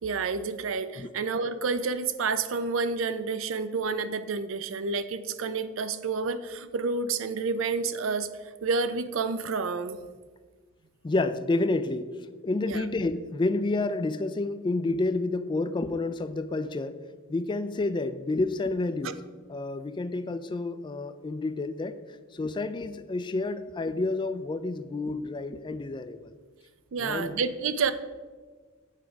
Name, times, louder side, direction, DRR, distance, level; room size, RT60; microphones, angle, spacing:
voice 1, 0.0-8.3 8.6-10.0 12.6-12.8 19.0-19.1 26.9-27.9, right 4 dB, 75° right, 12 dB, 0.5 m, -29 dB
voice 2, 11.0-12.1 12.4-17.0 17.3-19.1 19.5-21.9 22.3-26.3 27.0-27.4, left 2 dB, 25° left, 12 dB, 0.3 m, -29 dB
8.3 x 5.0 x 4.6 m, 1.4 s
head